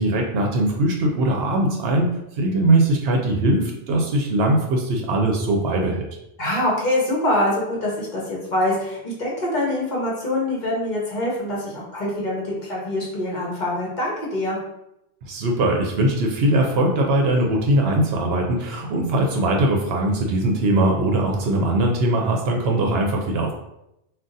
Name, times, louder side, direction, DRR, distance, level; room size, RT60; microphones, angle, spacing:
voice 1, 0.0-6.0 15.3-23.5, right 1 dB, 65° right, 1 dB, 0.7 m, -21 dB
voice 2, 6.4-14.6, left 1 dB, 45° left, -4 dB, 0.8 m, -24 dB
2.5 x 2.2 x 3.8 m, 0.84 s
omnidirectional pair, 1.2 m